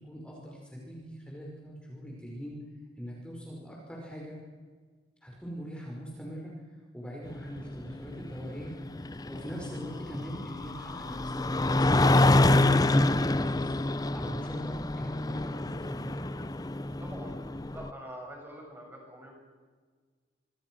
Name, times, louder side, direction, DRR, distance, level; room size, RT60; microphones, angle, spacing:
voice 1, 0.0-2.6 3.0-4.4 5.2-6.6 6.9-8.8 9.3-16.2, equal, 5° left, -3 dB, 5.4 m, -42 dB
sound 1, 7.3-17.9, left 2 dB, 20° left, 0.7 m, -27 dB
voice 2, 17.0-17.4 17.7-19.5, equal, 10° right, 1 dB, 6.7 m, -45 dB
27.5 x 25.5 x 6.4 m, 1.5 s
head